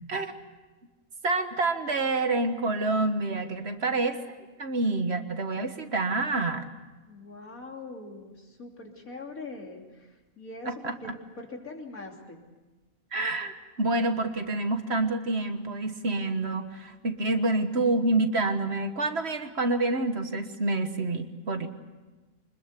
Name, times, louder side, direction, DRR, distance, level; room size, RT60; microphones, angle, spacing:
voice 1, 1.2-4.2 4.6-6.6 10.8-11.2 13.1-21.7, right 2 dB, 50° right, 8 dB, 1.6 m, -27 dB
voice 2, 7.0-11.1 11.4-12.4, left 3 dB, 75° left, 1 dB, 3.6 m, -42 dB
25.0 x 21.0 x 8.2 m, 1.2 s
omnidirectional pair, 1.5 m